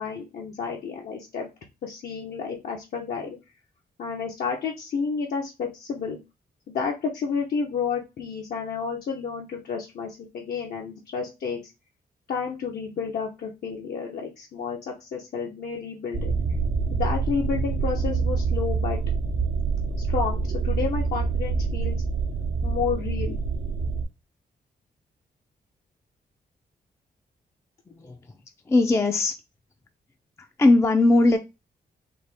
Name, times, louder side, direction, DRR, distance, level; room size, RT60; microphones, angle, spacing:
voice 1, 0.0-1.5 1.8-3.4 4.0-6.2 6.7-11.6 12.3-16.3 16.9-19.0 20.1-22.0 22.6-23.4, left 5 dB, 70° left, 0.8 m, -31 dB
sound 1, 16.1-24.0, right 4 dB, 80° right, 0.8 m, -26 dB
voice 2, 28.0-28.4 28.7-29.3 30.4-31.4, left 2 dB, 15° left, 0.4 m, -20 dB
4.2 x 2.8 x 3.3 m
wide cardioid pair, 155°, 16 cm